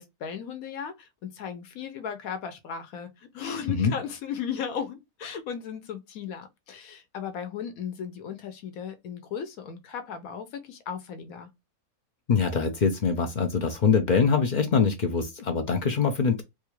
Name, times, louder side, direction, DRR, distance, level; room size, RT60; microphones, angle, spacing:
voice 1, 0.0-11.5, left 7 dB, 80° left, 1.2 m, -36 dB
voice 2, 12.3-16.4, left 5 dB, 60° left, 0.4 m, -24 dB
3.7 x 2.4 x 2.9 m
omnidirectional pair, 1.5 m